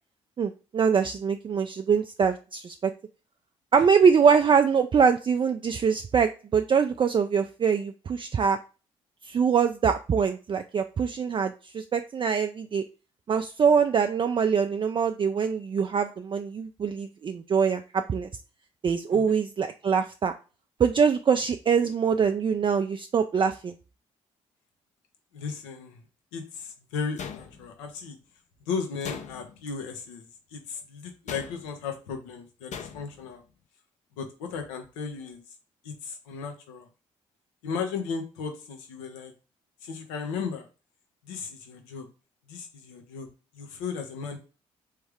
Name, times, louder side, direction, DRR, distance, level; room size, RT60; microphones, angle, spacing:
voice 1, 0.4-2.9 3.7-8.6 9.2-12.8 13.3-18.3 18.8-20.3 20.8-23.7, right 6 dB, 30° right, 6 dB, 0.4 m, -23 dB
voice 2, 25.3-26.0 26.3-28.2 28.6-33.4 34.2-35.4 35.8-36.9 37.6-39.3 39.8-40.7 41.2-42.1 42.5-43.3 43.5-44.4, left 5 dB, 80° left, 4 dB, 0.8 m, -35 dB
sound 1, 27.2-27.9 29.0-29.7 31.3-31.8 32.7-33.2, left 7 dB, 50° left, 0.6 m, -40 dB
3.5 x 3.2 x 3.4 m, 0.34 s
hypercardioid pair, 45°, 16 cm